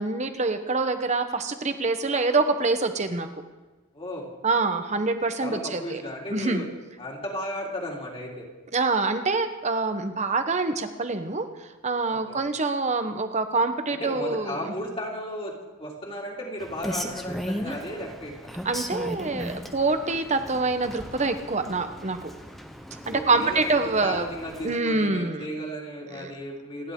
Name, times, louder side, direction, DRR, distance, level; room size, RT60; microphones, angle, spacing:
voice 1, 0.0-3.3 4.4-6.0 6.3-6.6 8.7-11.5 11.8-14.7 18.6-22.3 23.1-24.3 24.6-25.5 26.1-26.3, right 3 dB, 35° right, 8 dB, 1.1 m, -25 dB
voice 2, 3.9-4.3 5.4-6.7 7.0-8.5 12.1-12.5 13.9-18.5 23.1-23.7 24.0-26.9, equal, 25° left, -2 dB, 3.1 m, -35 dB
Rain, 16.6-24.8, equal, ahead, 1.0 m, -37 dB
27.5 x 11.0 x 3.8 m, 1.2 s
head